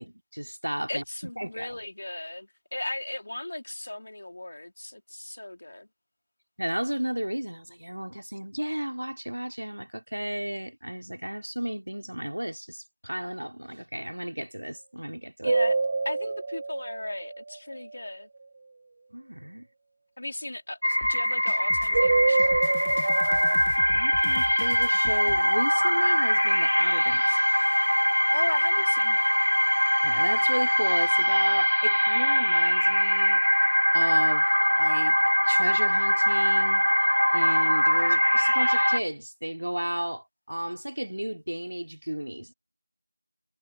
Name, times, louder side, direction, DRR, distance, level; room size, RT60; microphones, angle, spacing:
voice 1, 0.0-1.7 6.6-15.5 19.1-19.7 23.9-27.4 30.0-33.4 33.9-35.2 35.5-36.8 37.3-42.5, right 1 dB, 60° right, 3.3 m, -33 dB
voice 2, 0.9-5.9 15.4-15.8 16.0-18.3 20.2-22.6 28.3-29.4, left 1 dB, 35° left, 3.0 m, -36 dB
sound 1, 15.4-17.9 21.9-23.6, right 3 dB, 15° right, 1.0 m, -26 dB
sound 2, 20.8-39.0, equal, 70° left, 1.2 m, -22 dB
sound 3, 21.0-25.4, left 7 dB, 10° left, 0.8 m, -42 dB
figure-of-eight pair, 175°, 0 cm